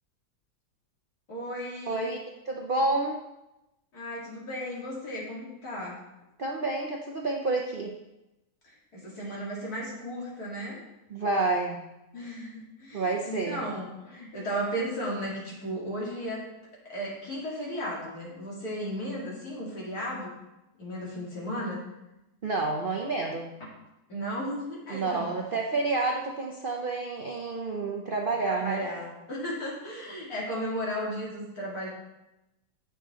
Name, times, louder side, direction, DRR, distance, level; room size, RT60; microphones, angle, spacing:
voice 1, 1.3-2.1 3.9-6.0 8.6-10.8 12.1-16.4 16.8-20.3 20.8-21.8 24.1-25.4 28.4-31.9, equal, 65° left, -5 dB, 2.9 m, -35 dB
voice 2, 1.9-2.2 2.5-3.2 6.4-7.9 11.1-11.8 12.9-13.6 22.4-23.5 24.9-28.8, right 3 dB, 50° right, 0 dB, 0.6 m, -29 dB
8.7 x 7.0 x 3.7 m, 0.95 s
omnidirectional pair, 1.8 m